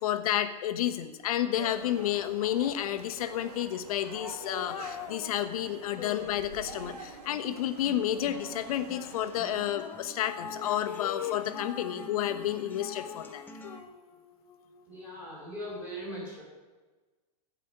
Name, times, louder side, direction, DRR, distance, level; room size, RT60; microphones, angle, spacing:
voice 1, 0.0-13.4, left 11 dB, 65° left, 8 dB, 1.2 m, -31 dB
sound 1, 1.5-9.7, right 5 dB, 75° right, 2.2 m, -47 dB
sound 2, 4.1-8.1 8.6-15.1, left 8 dB, 85° left, 1.3 m, -42 dB
sound 3, 7.8-13.8, left 1 dB, 10° left, 1.1 m, -48 dB
voice 2, 14.8-16.4, equal, 10° right, -6 dB, 5.2 m, -40 dB
14.5 x 5.5 x 9.1 m, 1.2 s
supercardioid pair, 150°, 20 cm